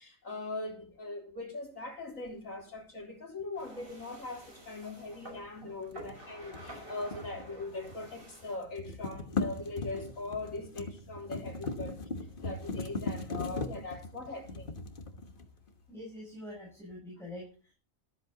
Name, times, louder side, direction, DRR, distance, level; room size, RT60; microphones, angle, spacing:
voice 1, 0.0-12.0 12.4-14.8, left 2 dB, 80° left, 3.9 m, -41 dB
sound 1, 3.5-8.6, right 1 dB, 40° right, 5.8 m, -50 dB
sound 2, 5.9-8.2 8.4-15.7, left 3 dB, 45° left, 1.4 m, -39 dB
voice 2, 15.9-17.7, left 1 dB, ahead, 6.8 m, -45 dB
13.5 x 13.5 x 4.0 m
omnidirectional pair, 1.4 m